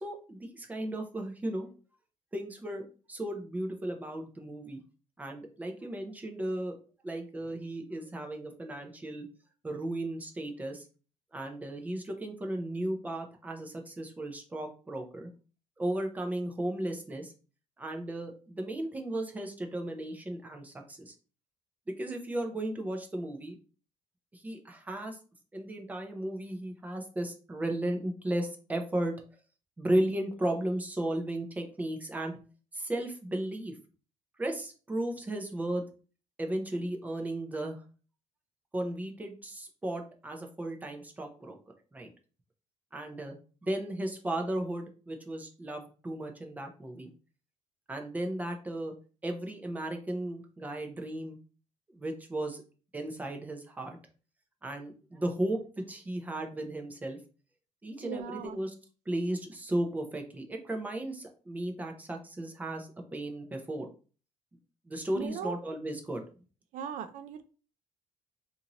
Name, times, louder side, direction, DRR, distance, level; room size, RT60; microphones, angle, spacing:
voice 1, 0.0-1.7 2.3-4.8 5.2-6.7 7.0-9.3 9.6-10.9 11.3-15.3 15.8-17.3 17.8-21.1 21.9-23.6 24.3-25.2 25.5-29.1 29.8-32.4 32.7-33.8 34.4-35.8 36.4-37.8 38.7-41.6 41.9-42.1 42.9-47.1 47.9-48.9 49.2-51.4 51.9-52.6 52.9-54.0 54.6-57.2 57.8-58.7 59.1-63.9 64.9-66.2, right 1 dB, 10° right, 3 dB, 0.5 m, -35 dB
voice 2, 58.0-58.6 65.2-65.6 66.7-67.4, right 7 dB, 70° right, 10 dB, 0.5 m, -38 dB
4.2 x 2.6 x 2.9 m, 0.37 s
cardioid pair, 165°, 14 cm